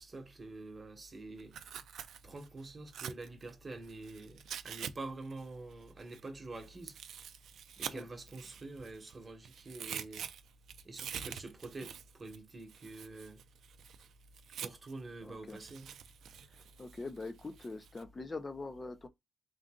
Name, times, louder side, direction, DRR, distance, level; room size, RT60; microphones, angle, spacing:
voice 1, 0.0-1.6 2.2-7.0 7.8-10.3 10.8-13.4 14.6-15.9, right 2 dB, 25° right, 1.2 m, -46 dB
Tearing, 1.4-4.9 5.2-9.1 9.4-15.0 15.5-18.0, right 8 dB, 75° right, 0.4 m, -46 dB
voice 2, 15.2-15.6 16.5-19.1, left 3 dB, 25° left, 0.6 m, -43 dB
3.8 x 2.6 x 3.6 m
cardioid pair, 125°, 0 cm